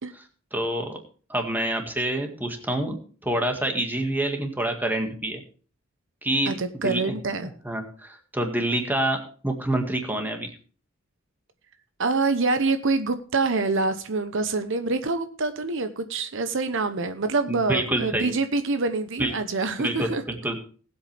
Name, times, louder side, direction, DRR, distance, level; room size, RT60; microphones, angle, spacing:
voice 1, 0.5-1.0 1.3-2.9 3.2-5.4 6.2-6.5 6.8-7.0 7.6-10.5 17.5-18.3 19.2-19.3 19.8-20.6, right 1 dB, 10° right, 3 dB, 1.9 m, -27 dB
voice 2, 6.5-7.5 12.0-20.2, right 3 dB, 65° right, 9 dB, 0.9 m, -26 dB
19.5 x 8.1 x 3.4 m, 0.40 s
head